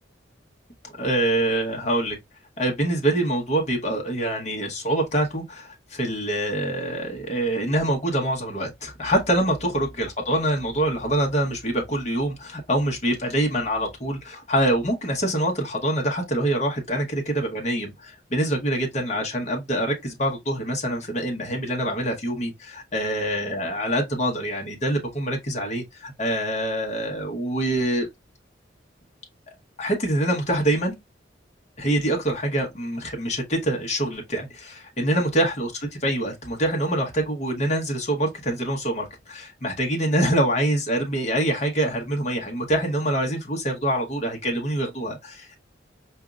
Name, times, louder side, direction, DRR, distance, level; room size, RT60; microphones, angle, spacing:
voice 1, 1.0-2.2 2.6-28.1 29.8-30.9 31.8-45.6, right 1 dB, 40° left, 1.0 m, -25 dB
5.0 x 2.6 x 2.3 m
head